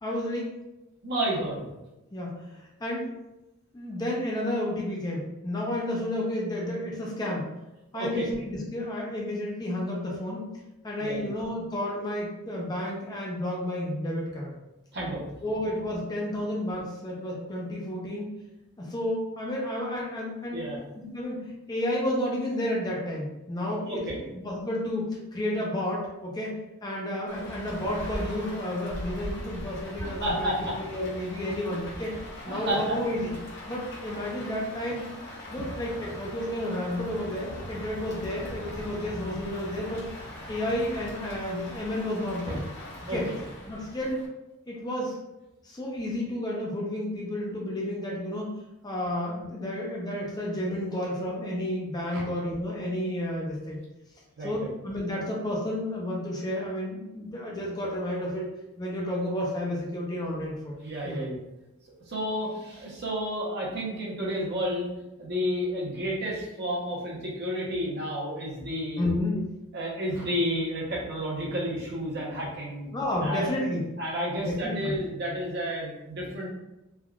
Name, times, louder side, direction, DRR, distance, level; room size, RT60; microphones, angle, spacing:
voice 1, 0.0-0.6 2.1-3.2 3.7-7.5 7.9-10.5 10.8-14.5 15.4-18.3 18.8-20.6 21.0-25.1 25.3-26.5 26.8-32.1 32.4-33.3 33.7-35.1 35.5-40.1 40.5-42.6 43.1-43.3 43.7-44.2 44.7-45.2 45.6-48.5 48.8-53.8 54.4-58.5 58.8-60.8 61.0-61.2 69.0-69.4 72.9-73.8 74.4-75.0, left 1 dB, 20° left, -3 dB, 0.4 m, -31 dB
voice 2, 1.0-1.6 7.9-8.3 11.0-11.3 14.9-15.2 20.5-20.8 23.9-24.2 30.0-30.7 31.7-31.8 32.5-33.0 42.4-42.6 43.1-43.4 52.1-52.2 54.4-54.7 60.8-61.4 62.1-64.9 65.2-69.0 69.7-72.9 73.2-73.5 74.0-76.5, equal, 50° right, -4 dB, 0.8 m, -31 dB
Rain, 27.3-44.3, left 1 dB, 50° left, 0.7 m, -41 dB
3.4 x 2.3 x 2.3 m, 0.97 s
head